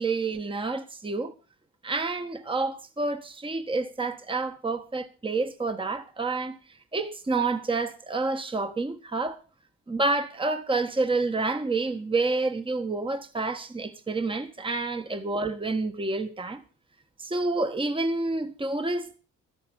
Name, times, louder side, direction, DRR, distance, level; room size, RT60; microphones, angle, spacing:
voice 1, 0.0-1.3 1.8-6.6 6.9-9.4 9.9-16.6 17.2-19.2, right 3 dB, 15° right, 1.4 m, -28 dB
13.0 x 11.5 x 5.5 m
cardioid pair, 90°, 30 cm